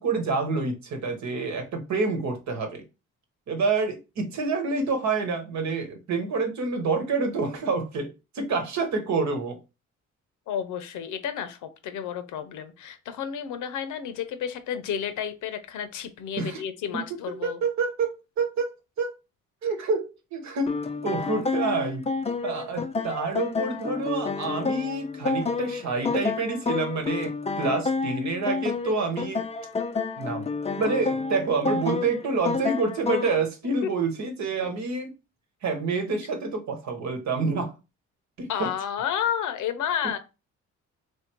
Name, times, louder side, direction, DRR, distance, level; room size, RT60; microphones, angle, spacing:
voice 1, 0.0-2.8 3.5-9.6 16.4-16.6 17.4-18.7 19.0-19.1 19.6-20.8 21.0-22.0 22.4-29.4 30.2-30.4 30.8-35.1 35.6-37.7 38.4-38.7, right 4 dB, 65° right, 1.2 m, -28 dB
voice 2, 10.5-17.6 33.8-33.9 38.5-40.2, left 8 dB, 80° left, 0.8 m, -31 dB
sound 1, 20.7-33.4, left 4 dB, 20° left, 0.4 m, -29 dB
3.1 x 2.7 x 4.5 m
cardioid pair, 90°, 30 cm